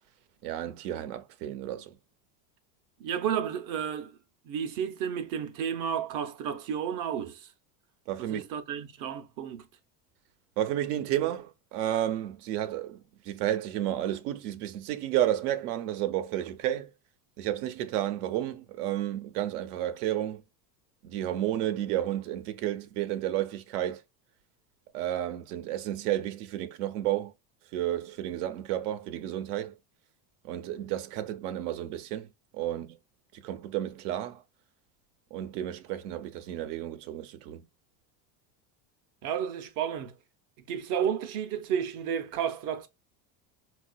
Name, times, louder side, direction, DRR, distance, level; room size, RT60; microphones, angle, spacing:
voice 1, 0.4-1.9 8.1-8.4 10.6-13.0 13.3-16.9 17.4-20.4 21.0-24.0 24.9-27.3 27.7-29.7 30.4-32.3 32.5-33.0 33.3-34.4 35.3-37.6, right 12 dB, 85° right, 0.7 m, -31 dB
voice 2, 3.0-4.1 4.5-7.5 8.2-9.6 39.2-40.1 40.7-42.9, right 8 dB, 45° right, 0.6 m, -32 dB
4.4 x 2.4 x 2.2 m
supercardioid pair, 140°, 46 cm